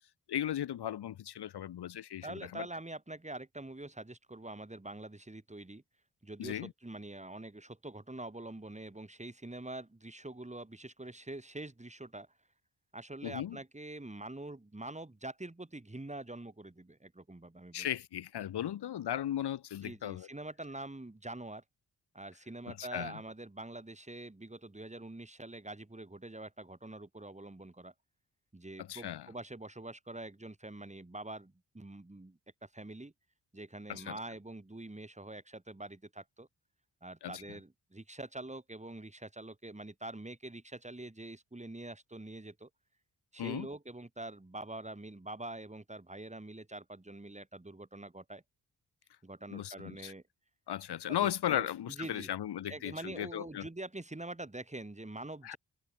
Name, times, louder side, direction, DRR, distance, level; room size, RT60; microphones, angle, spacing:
voice 1, 0.3-2.7 6.4-6.7 13.2-13.6 17.7-20.3 22.7-23.2 28.8-29.3 33.9-34.2 37.2-37.4 43.4-43.7 49.5-50.1 50.7-53.7 55.4-55.6, left 11 dB, 85° left, 5.6 m, -36 dB
voice 2, 2.2-5.8 6.2-12.3 12.9-17.9 19.8-21.6 22.1-27.9 28.5-33.1 33.5-36.5 37.0-42.7 43.3-48.4 49.2-50.2 51.1-52.3 52.7-55.6, right 2 dB, 15° right, 7.1 m, -45 dB
cardioid pair, 55°, 39 cm